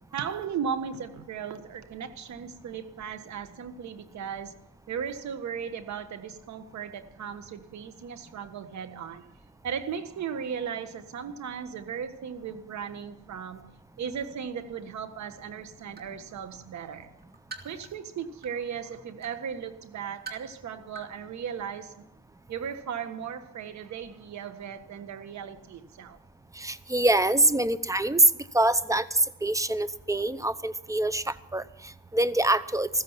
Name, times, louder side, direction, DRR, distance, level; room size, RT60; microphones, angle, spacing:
voice 1, 0.1-4.6 4.9-9.2 9.6-13.7 14.0-17.1 17.6-22.0 22.5-26.2, right 7 dB, 65° right, 11 dB, 1.6 m, -36 dB
sound 1, 14.9-15.0 15.5-16.2 16.7-18.7 19.2-19.4 19.9-20.5 20.9-21.1 21.4-21.5, right 5 dB, 30° right, 2.7 m, -44 dB
voice 2, 26.6-28.2 28.5-31.6 32.1-32.9, right 1 dB, 10° right, 16 dB, 0.8 m, -25 dB
15.0 x 14.0 x 5.7 m, 0.85 s
cardioid pair, 90°, 30 cm